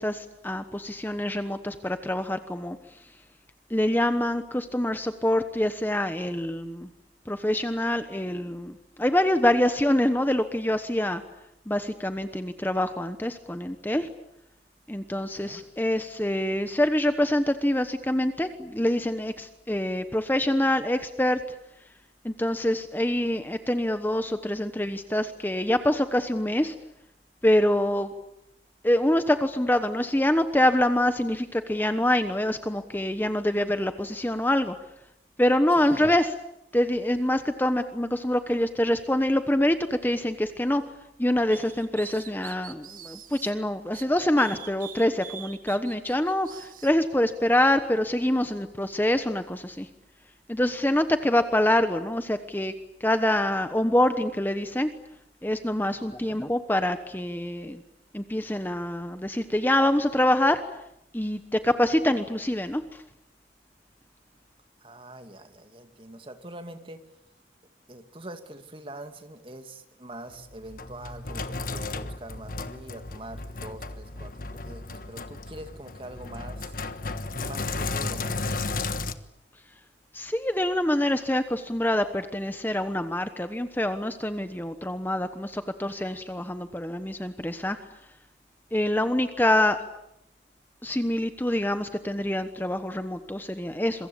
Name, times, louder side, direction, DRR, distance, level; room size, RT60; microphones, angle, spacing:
voice 1, 0.0-3.1 3.7-6.9 7.3-11.2 11.7-14.1 14.9-21.4 22.2-26.7 27.4-28.1 28.8-34.8 35.4-36.3 36.7-40.8 41.2-49.9 50.5-52.7 53.0-54.9 55.4-57.8 58.1-60.6 61.1-63.0 80.1-87.8 88.7-89.8 90.8-94.1, left 1 dB, 10° left, 9 dB, 1.1 m, -25 dB
sound 1, 41.5-43.5 43.9-46.9, right 9 dB, 50° right, 1.7 m, -44 dB
voice 2, 56.0-56.4 64.8-67.0 67.9-76.8 77.4-78.9, right 1 dB, 30° right, 7 dB, 2.3 m, -44 dB
Sink (filling or washing), 70.3-79.1, left 3 dB, 50° left, 1.4 m, -34 dB
27.0 x 23.5 x 8.6 m, 0.81 s
head